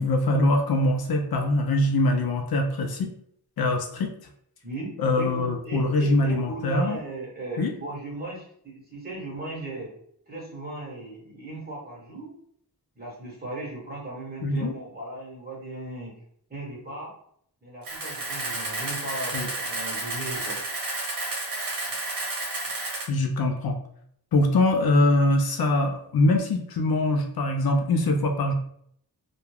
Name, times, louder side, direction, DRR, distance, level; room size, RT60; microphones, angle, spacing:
voice 1, 0.0-3.1 3.6-4.1 5.0-7.0 7.6-7.7 14.4-14.7 19.3-19.5 23.1-23.8 24.3-28.5, left 2 dB, 65° left, 4 dB, 0.5 m, -23 dB
voice 2, 4.6-9.9 10.3-12.3 12.9-16.2 16.5-17.1 17.6-20.6, right 2 dB, 25° right, -4 dB, 1.2 m, -37 dB
Camera, 17.8-23.1, right 2 dB, 55° right, 0.9 m, -31 dB
2.3 x 2.2 x 3.2 m, 0.67 s
wide cardioid pair, 85°, 40 cm